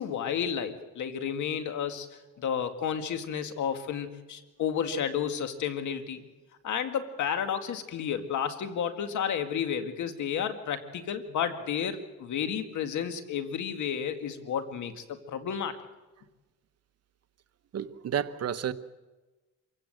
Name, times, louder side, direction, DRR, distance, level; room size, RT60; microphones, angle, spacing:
voice 1, 0.0-2.1 2.4-6.2 6.6-15.8, left 8 dB, 75° left, 7 dB, 2.1 m, -31 dB
voice 2, 17.7-18.7, right 9 dB, 55° right, 11 dB, 1.1 m, -31 dB
26.5 x 16.0 x 8.0 m, 1.2 s
cardioid pair, 90°, 30 cm